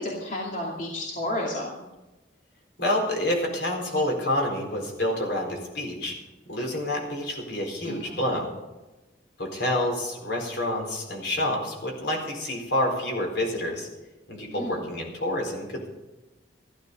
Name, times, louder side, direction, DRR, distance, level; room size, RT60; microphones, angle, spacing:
voice 1, 0.0-1.8 7.8-8.4 14.5-14.8, left 1 dB, 45° left, -3 dB, 2.5 m, -32 dB
voice 2, 2.8-6.1 6.5-8.5 9.4-13.9 14.3-15.9, left 1 dB, 70° left, 0 dB, 4.4 m, -28 dB
14.5 x 12.5 x 5.3 m, 1.1 s
head